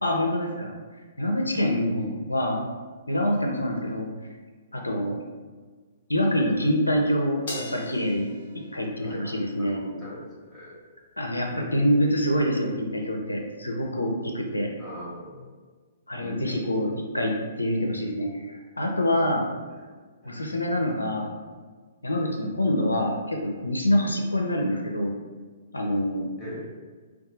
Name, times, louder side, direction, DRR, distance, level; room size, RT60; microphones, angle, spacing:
voice 1, 0.0-0.7 1.2-2.6 3.1-4.1 4.7-5.2 6.1-8.3 8.5-9.8 11.2-14.7 16.1-19.5 20.2-21.3 22.0-25.1 25.7-26.2, left 1 dB, 90° left, 1 dB, 0.5 m, -26 dB
voice 2, 1.9-2.3 9.0-10.7 11.2-11.7 14.8-15.5 16.2-16.9 19.3-19.4 19.7-19.9 20.2-20.5 20.8-21.1 21.4-21.6 24.7-24.9 26.4-26.7, left 1 dB, 5° left, -10 dB, 1.4 m, -42 dB
Crash cymbal, 7.5-10.0, left 1 dB, 50° left, 1.0 m, -40 dB
2.6 x 2.2 x 3.8 m, 1.4 s
figure-of-eight pair, 120°, 0 cm